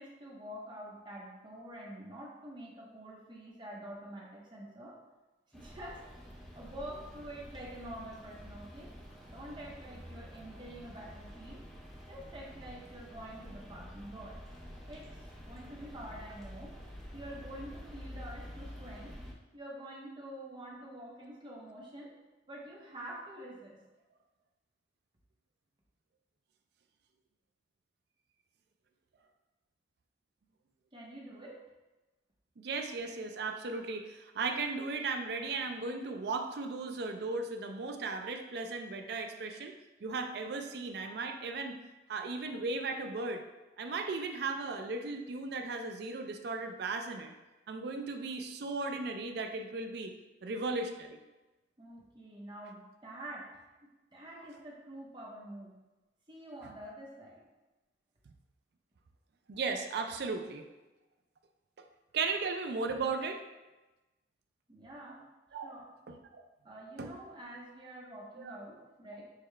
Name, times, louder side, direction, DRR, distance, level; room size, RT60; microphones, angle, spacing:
voice 1, 0.0-5.0 5.5-6.0 6.5-8.9 9.3-11.6 12.1-14.4 14.9-16.8 17.1-19.1 19.5-22.1 22.5-23.8 30.9-31.6 51.8-53.5 54.1-55.8 56.3-57.4 64.7-65.3 65.6-65.9 66.6-69.2, right 1 dB, 25° right, -3 dB, 0.9 m, -47 dB
sound 1, 5.5-19.3, equal, ahead, 0.6 m, -49 dB
voice 2, 32.6-39.7 40.0-41.8 42.1-43.4 43.8-47.3 47.7-50.1 50.4-51.2 59.5-60.6 61.8-61.9 62.1-63.4 65.5-65.7 66.1-66.4 67.0-67.1 68.4-68.6, right 3 dB, 60° right, 5 dB, 0.4 m, -36 dB
6.4 x 2.3 x 3.2 m, 1.1 s
head